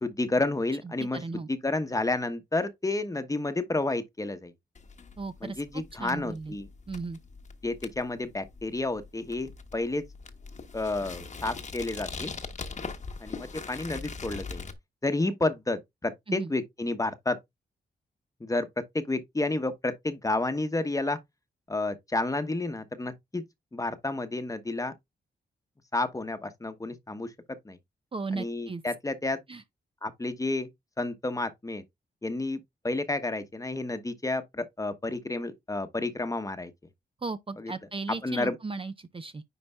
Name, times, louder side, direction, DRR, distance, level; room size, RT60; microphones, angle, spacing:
voice 1, 0.0-4.5 5.4-6.7 7.6-10.0 10.7-12.3 13.2-14.6 15.0-17.4 18.4-21.2 21.7-23.4 23.7-24.9 25.9-27.3 27.6-27.8 28.3-29.4 30.0-30.7 31.0-31.8 32.2-36.7 37.6-37.7 38.2-38.6, left 2 dB, 20° left, 1.0 m, -30 dB
voice 2, 1.1-1.5 5.2-6.5 6.9-7.2 16.3-16.5 28.1-28.8 29.5-29.6 37.2-39.4, right 4 dB, 30° right, 0.6 m, -36 dB
sound 1, 4.7-14.7, left 4 dB, 40° left, 1.1 m, -41 dB
9.8 x 4.2 x 2.3 m
cardioid pair, 90°, 18 cm